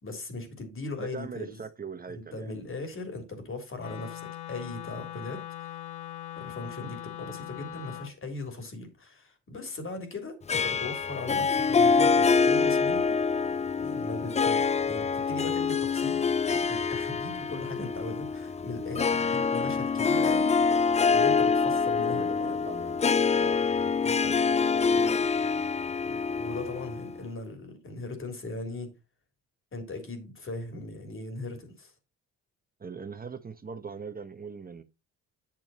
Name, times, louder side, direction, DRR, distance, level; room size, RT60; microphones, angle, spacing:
voice 1, 0.0-1.6 2.1-5.4 6.4-13.2 13.8-16.2 16.6-20.5 21.1-22.6 24.0-24.3 24.9-25.2 26.3-28.9 29.7-31.9, left 2 dB, 45° left, 3.4 m, -39 dB
voice 2, 1.0-2.5 22.1-23.0 23.4-23.6 24.2-24.4 26.0-26.2 32.8-34.8, right 5 dB, 30° right, 1.0 m, -41 dB
Wind instrument woodwind instrument, 3.8-8.1, left 12 dB, 80° left, 1.0 m, -41 dB
Harp, 10.5-27.2, left 5 dB, 25° left, 0.4 m, -26 dB
8.7 x 6.2 x 4.2 m
cardioid pair, 90°, 30 cm